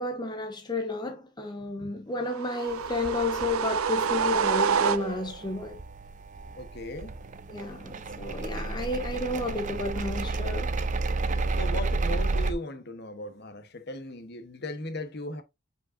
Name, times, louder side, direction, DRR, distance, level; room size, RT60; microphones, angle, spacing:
voice 1, 0.0-5.8 7.5-10.7, left 2 dB, 20° left, 1.0 m, -32 dB
sound 1, 2.3-5.5, right 6 dB, 85° right, 0.5 m, -27 dB
sound 2, 2.7-12.5, right 3 dB, 35° right, 0.5 m, -32 dB
voice 2, 6.6-7.1 11.5-15.4, left 1 dB, 50° left, 1.2 m, -37 dB
7.8 x 5.1 x 2.7 m
head